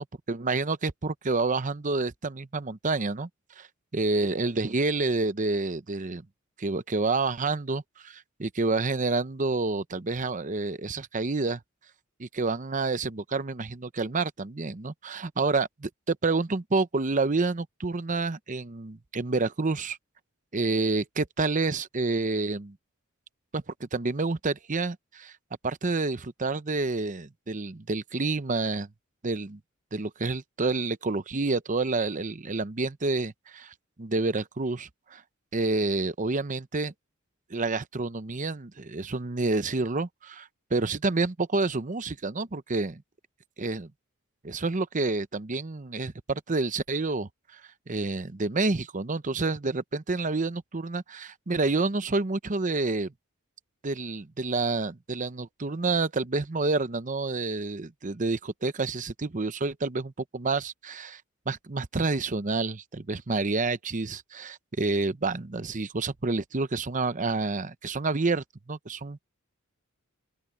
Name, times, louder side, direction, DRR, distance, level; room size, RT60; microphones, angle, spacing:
voice 1, 0.0-3.3 3.6-3.7 3.9-6.2 6.6-11.6 12.2-15.7 16.1-20.0 20.5-22.8 23.5-25.3 25.6-28.9 29.2-29.6 29.9-35.2 35.5-36.9 37.5-43.0 43.6-43.9 44.4-47.6 47.9-53.1 53.8-61.2 61.5-69.2, right 3 dB, 35° right, 0.8 m, -29 dB
open air
head